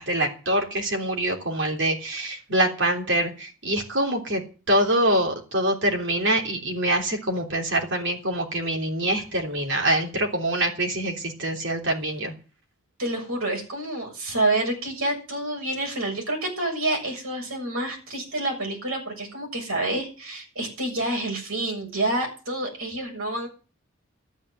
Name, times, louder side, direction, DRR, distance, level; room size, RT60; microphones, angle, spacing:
voice 1, 0.0-4.4 4.7-12.3, right 1 dB, 55° right, 1 dB, 3.4 m, -25 dB
voice 2, 13.0-23.5, right 2 dB, 75° right, 1 dB, 6.9 m, -28 dB
12.5 x 9.0 x 7.9 m, 0.35 s
head